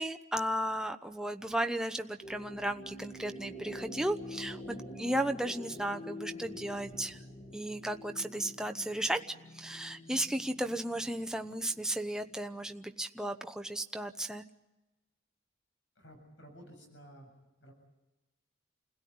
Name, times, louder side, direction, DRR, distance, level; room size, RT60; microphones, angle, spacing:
voice 1, 0.0-7.2 7.5-9.2 9.5-14.4, right 1 dB, 5° right, 6 dB, 0.9 m, -35 dB
sound 1, 2.2-12.7, left 1 dB, 50° left, 5.3 m, -47 dB
voice 2, 16.0-17.3 17.6-17.7, equal, 75° left, 3 dB, 7.5 m, -53 dB
29.5 x 17.0 x 9.5 m, 1.0 s
head